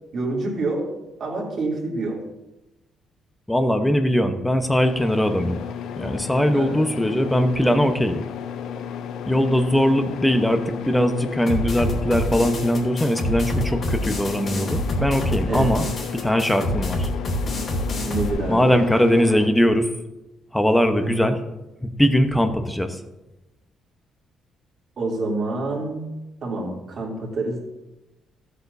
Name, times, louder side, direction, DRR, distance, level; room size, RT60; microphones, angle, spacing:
voice 1, 0.1-0.9 1.2-2.2 6.5-6.9 15.4-15.8 18.0-18.8 21.0-21.3 25.0-26.1 26.4-27.6, right 2 dB, 55° right, -3 dB, 3.1 m, -27 dB
voice 2, 3.5-5.6 6.0-8.2 9.3-15.9 16.1-17.1 18.5-19.9 20.5-21.4 21.8-23.0, equal, 5° left, 7 dB, 1.0 m, -20 dB
sound 1, 4.8-19.5, left 8 dB, 80° left, 0.6 m, -33 dB
sound 2, 11.5-18.3, left 1 dB, 50° left, 2.9 m, -27 dB
14.0 x 8.2 x 2.8 m, 1.0 s
cardioid pair, 90°, 0 cm